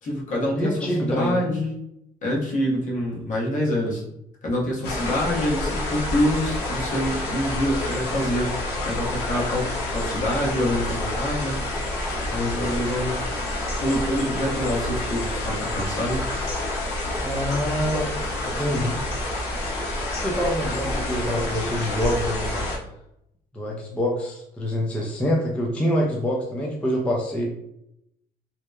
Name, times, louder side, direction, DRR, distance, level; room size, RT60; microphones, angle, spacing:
voice 1, 0.0-1.8 2.2-4.0 4.4-11.6 12.3-13.2 13.8-16.2, left 1 dB, 50° left, -3 dB, 0.9 m, -26 dB
voice 2, 0.5-1.4 17.2-18.1 18.6-19.0 20.2-22.7 23.5-27.5, equal, 5° left, -2 dB, 0.4 m, -25 dB
sound 1, 4.8-22.8, left 1 dB, 80° left, 0.7 m, -28 dB
2.8 x 2.0 x 2.3 m, 0.79 s
cardioid pair, 110°, 17 cm